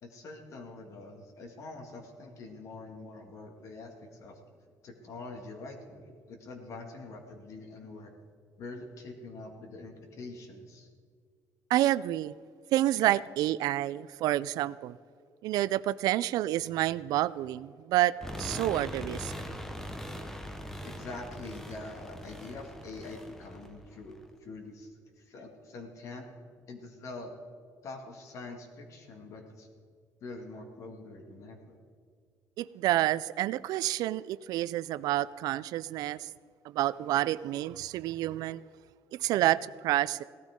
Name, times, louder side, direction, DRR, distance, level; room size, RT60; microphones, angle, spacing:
voice 1, 0.0-4.4 4.8-8.1 8.6-10.9 20.8-26.3 26.7-27.3 27.8-29.7 30.2-31.8, left 3 dB, 50° left, 4 dB, 1.9 m, -45 dB
voice 2, 11.7-12.3 12.7-15.0 15.4-19.3 32.6-36.3 36.7-38.6 39.1-40.2, right 14 dB, 75° right, 18 dB, 0.3 m, -29 dB
sound 1, 18.2-24.3, equal, 5° left, 0.9 m, -41 dB
16.5 x 13.0 x 3.7 m, 2.1 s
cardioid pair, 145°, 7 cm